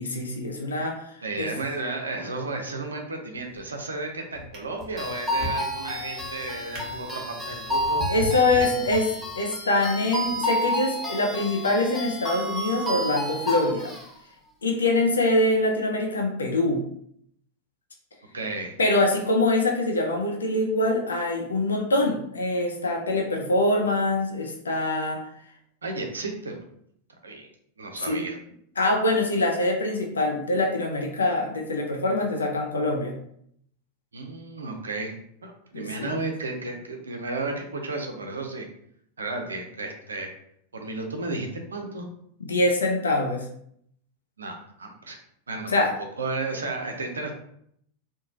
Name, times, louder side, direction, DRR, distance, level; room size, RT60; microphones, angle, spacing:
voice 1, 0.0-1.5 8.1-9.1 9.4-13.9 14.6-16.8 18.8-25.2 28.0-28.3 28.8-33.1 35.7-36.1 42.4-43.5 45.7-45.9, left 2 dB, 70° left, 1 dB, 0.4 m, -24 dB
voice 2, 1.2-8.0 8.6-8.8 18.3-18.7 25.8-26.6 27.2-27.5 27.8-28.4 34.1-35.1 35.4-38.7 39.2-40.3 40.7-42.1 44.4-45.2 45.5-45.7 46.2-47.3, right 3 dB, 75° right, 3 dB, 0.5 m, -33 dB
Drawer open or close, 3.4-3.8 4.3-9.5 10.2-10.4, equal, 30° right, 1.0 m, -38 dB
sound 1, 5.0-14.0, equal, ahead, 0.6 m, -30 dB
3.1 x 2.2 x 2.5 m, 0.69 s
figure-of-eight pair, 90°, 0 cm